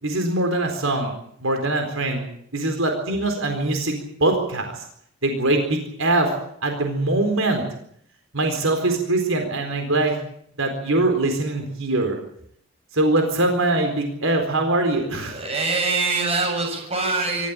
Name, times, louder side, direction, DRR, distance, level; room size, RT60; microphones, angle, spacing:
voice 1, 0.0-1.1 1.4-2.2 2.5-3.9 4.2-4.7 5.2-6.3 6.6-7.6 8.3-10.2 10.6-12.2 12.9-15.4, right 2 dB, 75° right, 4 dB, 4.2 m, -22 dB
voice 2, 15.2-17.5, right 3 dB, 30° right, 3 dB, 7.7 m, -24 dB
25.0 x 14.5 x 8.9 m, 0.68 s
head